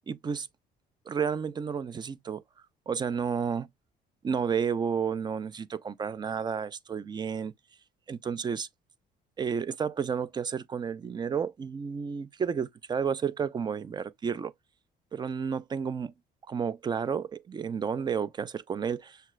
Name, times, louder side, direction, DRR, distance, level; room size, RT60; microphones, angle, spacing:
voice 1, 0.1-0.5 1.1-2.4 2.9-3.7 4.2-7.5 8.1-8.7 9.4-14.5 15.1-16.1 16.5-19.2, right 6 dB, 25° right, 0.4 m, -31 dB
6.6 x 2.2 x 3.1 m
cardioid pair, 110°, 17 cm